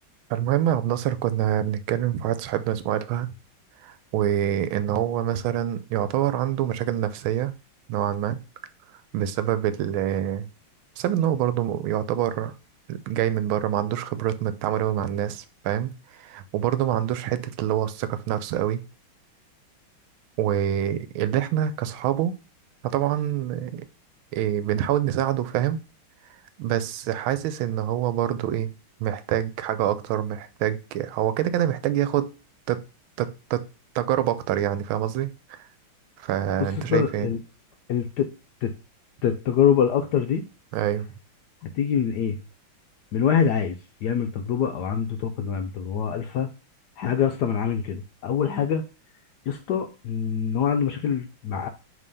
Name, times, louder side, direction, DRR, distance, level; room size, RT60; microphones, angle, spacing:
voice 1, 0.3-3.3 3.8-7.5 7.9-8.4 9.1-10.5 11.0-12.5 12.9-18.8 20.4-22.3 22.8-23.8 24.3-25.8 26.6-28.7 29.0-32.3 32.7-32.8 33.2-33.6 33.9-35.6 36.2-37.3 40.7-41.0, right 11 dB, 85° right, 1.4 m, -26 dB
voice 2, 36.7-37.4 37.9-38.3 38.6-38.7 39.2-40.4 41.7-42.4 43.1-46.5 47.0-48.8 49.5-51.7, left 8 dB, 75° left, 1.0 m, -24 dB
5.4 x 3.4 x 5.3 m
omnidirectional pair, 2.3 m